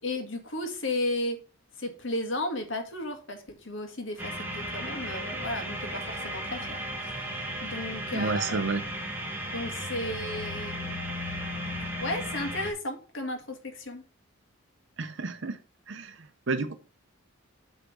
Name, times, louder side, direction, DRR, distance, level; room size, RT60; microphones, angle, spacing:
voice 1, 0.0-1.4 1.8-8.7 9.5-11.0 12.0-14.0, left 1 dB, 65° left, 1.7 m, -34 dB
sound 1, 4.2-12.7, equal, 10° right, 1.5 m, -35 dB
voice 2, 8.1-8.8 15.0-15.6 15.9-16.7, right 3 dB, 65° right, 0.7 m, -31 dB
8.3 x 3.7 x 6.0 m
head